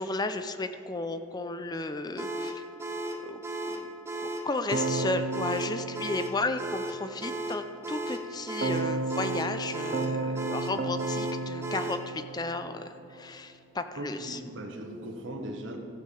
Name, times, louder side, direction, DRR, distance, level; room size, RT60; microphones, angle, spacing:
voice 1, 0.0-2.6 3.2-3.9 4.2-14.4, left 3 dB, 20° left, 9 dB, 0.5 m, -34 dB
sound 1, 2.2-12.1, right 1 dB, 15° right, 0.8 m, -35 dB
Keyboard (musical), 4.7-7.0 8.6-12.9, right 3 dB, 55° right, 0.7 m, -33 dB
voice 2, 14.0-15.8, right 1 dB, 80° right, 3 dB, 1.2 m, -38 dB
14.5 x 5.6 x 6.7 m, 2.8 s
head